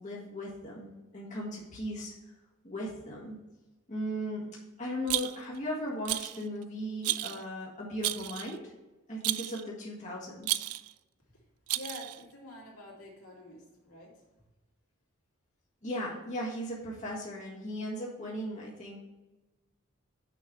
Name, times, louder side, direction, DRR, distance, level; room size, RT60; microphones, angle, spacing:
voice 1, 0.0-2.1 2.6-3.4 3.9-8.7 9.1-10.6 15.8-19.0, equal, 35° left, -5 dB, 1.6 m, -37 dB
Rattle, 5.1-5.6 6.1-6.4 7.0-7.4 8.0-8.6 9.2-9.6 10.4-10.9 11.7-12.2, right 17 dB, 85° right, 0.3 m, -32 dB
voice 2, 11.3-14.2, left 1 dB, 80° left, -3 dB, 2.5 m, -48 dB
6.4 x 5.4 x 4.7 m, 1.1 s
head